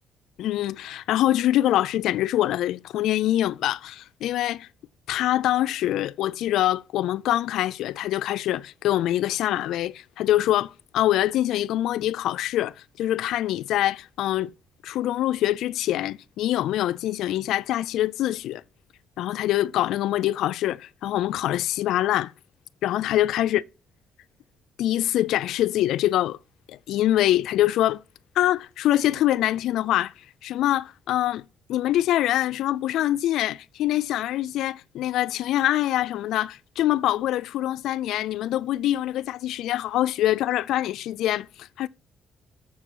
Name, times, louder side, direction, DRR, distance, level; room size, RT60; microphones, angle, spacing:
voice 1, 0.4-4.7 5.1-14.5 14.8-18.6 19.2-22.3 22.8-23.6 24.8-26.4 26.7-28.0 28.4-30.1 30.4-41.9, left 13 dB, 85° left, 0.4 m, -24 dB
7.3 x 6.0 x 6.1 m
cardioid pair, 90°, 0 cm